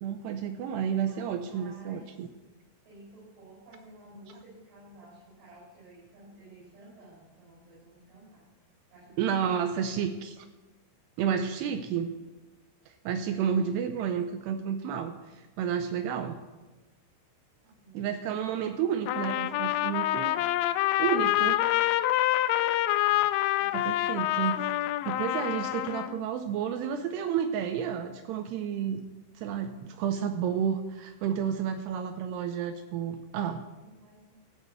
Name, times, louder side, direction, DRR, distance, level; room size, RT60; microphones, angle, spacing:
voice 1, 0.0-2.3 9.2-10.5 11.2-12.1 12.9-16.4 17.9-20.4 21.0-21.6 23.7-24.7 25.1-29.0 29.4-33.6, right 8 dB, 90° right, 8 dB, 2.3 m, -31 dB
voice 2, 1.0-2.2 2.8-8.4 8.9-10.2 13.1-13.7 17.6-18.2 23.5-24.1 33.8-34.4, right 1 dB, 70° right, -8 dB, 8.1 m, -53 dB
Trumpet, 19.1-26.2, left 15 dB, 85° left, 2.6 m, -27 dB
14.0 x 7.3 x 8.1 m, 1.2 s
omnidirectional pair, 5.6 m